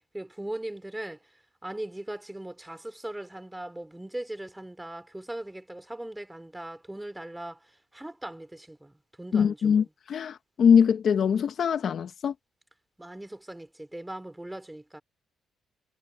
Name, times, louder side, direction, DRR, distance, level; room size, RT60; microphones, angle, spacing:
voice 1, 0.1-1.2 1.6-7.7 7.9-9.9 13.0-15.0, right 1 dB, 10° right, 4.0 m, -39 dB
voice 2, 9.3-12.3, left 7 dB, 55° left, 1.4 m, -23 dB
cardioid pair, 90°, 0 cm